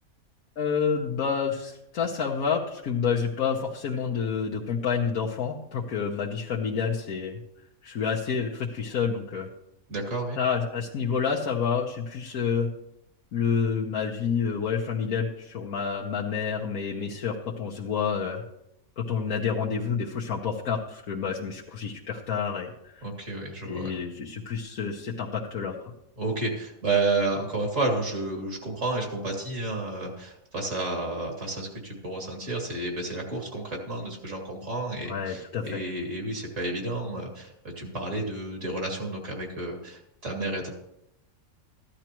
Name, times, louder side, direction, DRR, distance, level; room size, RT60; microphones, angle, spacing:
voice 1, 0.6-7.4 7.8-9.5 10.4-12.7 13.3-18.4 19.0-23.0 23.6-25.9 35.1-35.8, left 6 dB, 80° left, -3 dB, 1.5 m, -29 dB
voice 2, 9.9-10.4 23.0-23.9 26.2-37.5 37.8-40.7, right 2 dB, 60° right, 0 dB, 2.9 m, -31 dB
15.0 x 11.5 x 3.0 m, 0.81 s
omnidirectional pair, 1.5 m